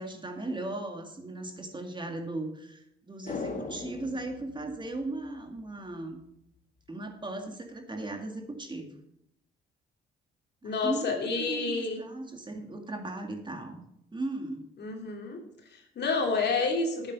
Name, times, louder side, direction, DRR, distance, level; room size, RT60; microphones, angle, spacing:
voice 1, 0.0-6.2 6.9-8.9 10.6-13.8 14.1-14.6, right 2 dB, 25° right, 4 dB, 2.0 m, -37 dB
sound 1, 3.3-5.7 6.0-6.1, left 3 dB, 40° left, 1.9 m, -40 dB
voice 2, 10.6-12.0 14.8-15.4 15.7-17.1, left 4 dB, 60° left, 2 dB, 2.7 m, -29 dB
9.6 x 8.0 x 5.5 m, 0.78 s
cardioid pair, 90°, 20 cm